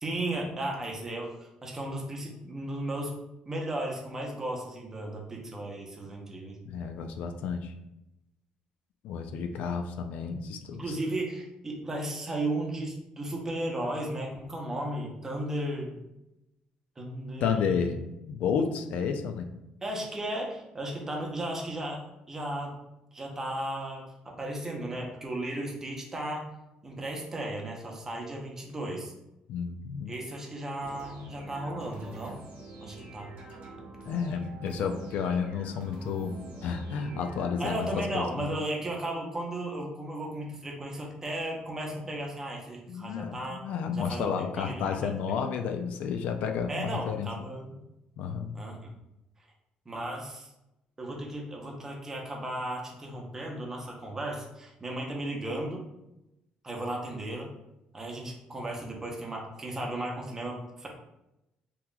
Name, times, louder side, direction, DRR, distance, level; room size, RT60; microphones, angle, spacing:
voice 1, 0.0-3.1 3.5-6.6 10.7-16.0 17.0-17.9 19.8-22.0 22.3-22.7 23.1-26.5 26.8-29.1 30.1-32.4 32.8-33.3 37.6-43.6 43.9-45.1 46.7-47.8 48.5-48.9 49.9-50.5 51.0-55.8 56.6-57.5 57.9-60.9, right 1 dB, 20° right, -1 dB, 0.7 m, -35 dB
voice 2, 6.6-7.7 9.0-11.0 17.4-18.0 18.3-19.5 29.5-30.1 34.0-38.5 42.9-47.3 48.2-48.5, left 6 dB, 70° left, 5 dB, 0.3 m, -31 dB
sound 1, 30.8-37.7, right 2 dB, 60° right, 0.8 m, -46 dB
3.7 x 2.9 x 2.2 m, 0.90 s
cardioid pair, 140°, 3 cm